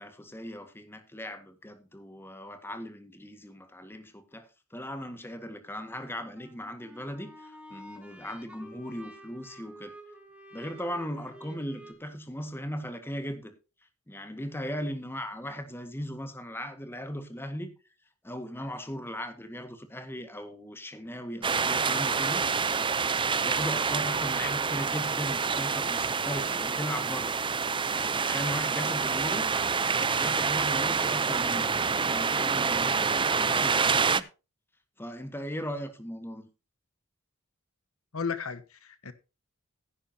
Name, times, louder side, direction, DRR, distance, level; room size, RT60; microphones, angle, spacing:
voice 1, 0.0-9.9 10.5-13.5 14.1-17.7 18.2-22.5 23.4-27.3 27.9-29.5 30.0-34.2 35.0-36.5, equal, 10° left, 1.8 m, -38 dB
sound 1, 6.4-11.9, right 1 dB, 5° right, 2.2 m, -49 dB
sound 2, 21.4-34.2, right 5 dB, 25° right, 0.6 m, -27 dB
voice 2, 38.1-39.1, left 5 dB, 70° left, 1.2 m, -34 dB
16.0 x 10.0 x 2.9 m
head